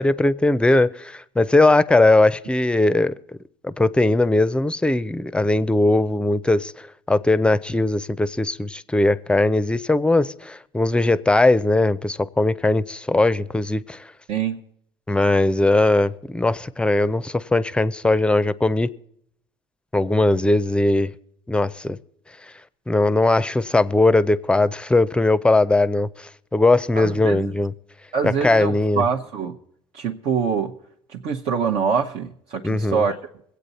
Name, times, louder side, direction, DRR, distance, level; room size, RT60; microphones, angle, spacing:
voice 1, 0.0-3.1 3.6-6.7 7.1-14.1 15.1-18.9 19.9-21.1 21.5-22.0 22.9-27.7 28.2-29.0 32.6-33.0, left 2 dB, 10° left, 0.5 m, -19 dB
voice 2, 14.3-14.6 27.0-27.5 28.1-29.6 29.9-30.8 31.1-33.1, right 6 dB, 65° right, 0.8 m, -24 dB
22.0 x 8.3 x 4.1 m
supercardioid pair, 85°, 12 cm